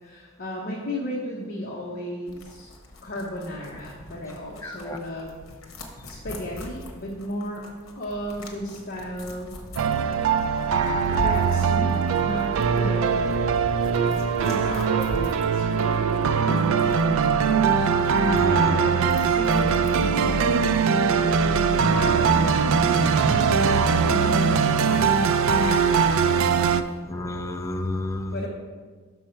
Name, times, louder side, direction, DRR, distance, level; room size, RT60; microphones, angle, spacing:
voice 1, 0.0-2.7 3.0-5.3 6.0-7.7 8.0-9.5 11.1-13.5 14.4-18.0 18.4-26.1 26.8-26.9 28.3-28.5, equal, 45° left, -3 dB, 0.8 m, -34 dB
sound 1, 2.3-20.0, left 1 dB, 70° left, 1.0 m, -42 dB
voice 2, 4.6-5.0 18.2-18.7 27.1-28.4, left 2 dB, 15° left, 4 dB, 0.4 m, -30 dB
sound 2, 9.8-26.8, right 6 dB, 70° right, 0.3 m, -21 dB
6.3 x 5.4 x 4.4 m, 1.5 s
head